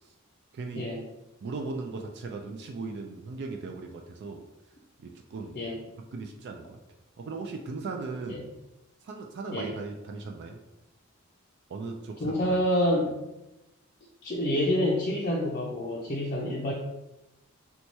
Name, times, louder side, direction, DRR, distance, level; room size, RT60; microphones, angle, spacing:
voice 1, 0.5-0.9 1.4-4.4 5.0-5.6 6.1-6.8 7.2-8.5 9.0-10.6 11.7-12.6, right 3 dB, 55° right, 3 dB, 0.3 m, -38 dB
voice 2, 12.2-13.2 14.2-16.7, left 1 dB, 40° left, -4 dB, 0.5 m, -27 dB
3.0 x 2.2 x 4.1 m, 0.96 s
head